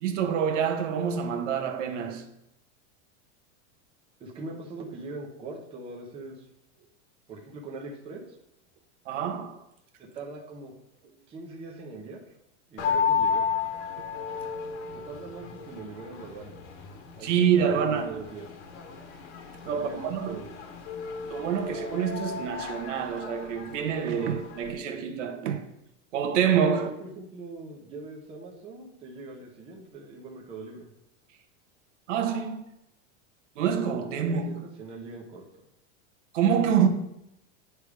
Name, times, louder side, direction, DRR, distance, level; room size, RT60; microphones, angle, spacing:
voice 1, 0.0-2.2 9.1-9.6 17.2-18.2 19.6-20.4 21.3-25.6 26.1-26.9 32.1-32.6 33.6-34.6 36.3-36.9, right 7 dB, 80° right, 1.1 m, -26 dB
voice 2, 4.2-6.4 7.3-8.4 10.0-10.7 11.3-12.2 12.7-13.5 14.9-16.6 17.2-18.5 19.6-20.4 26.7-30.9 34.3-35.4, right 3 dB, 15° right, 0.7 m, -42 dB
sound 1, 12.8-24.7, left 6 dB, 70° left, 1.4 m, -33 dB
9.7 x 3.5 x 4.7 m
supercardioid pair, 175°, 36 cm